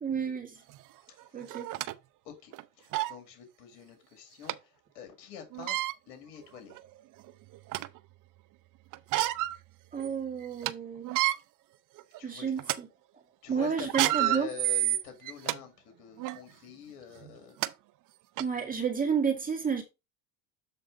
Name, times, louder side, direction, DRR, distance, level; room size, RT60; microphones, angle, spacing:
voice 1, 0.0-0.6 1.3-1.7 9.9-11.1 12.2-12.9 13.5-14.5 18.4-19.8, right 6 dB, 15° right, 1.9 m, -31 dB
sound 1, 0.7-0.8 1.5-1.9 2.5-2.6 2.9-3.2 4.5-4.6 5.5-5.9 6.7-6.8 7.3-8.0 8.9-9.6 10.0-10.1 10.4-10.7 11.0-11.4 12.0-12.2 12.6-12.8 13.8-15.6 16.2-16.4 17.2-17.3 17.6-17.7 18.4-18.5, right 16 dB, 45° right, 0.5 m, -29 dB
voice 2, 2.8-5.8 6.1-6.8 12.2-12.5 13.4-17.6, left 8 dB, 70° left, 2.3 m, -45 dB
7.6 x 3.4 x 4.9 m
supercardioid pair, 105°, 47 cm